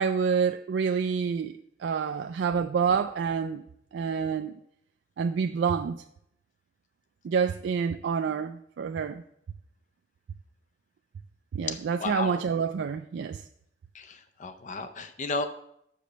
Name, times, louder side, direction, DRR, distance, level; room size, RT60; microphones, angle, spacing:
voice 1, 0.0-3.6 3.9-4.6 5.2-6.0 7.2-9.2 11.5-13.4, right 6 dB, 75° right, 0.3 m, -28 dB
voice 2, 11.7-12.4 13.9-15.5, left 3 dB, 40° left, 0.5 m, -33 dB
6.8 x 5.1 x 6.3 m
head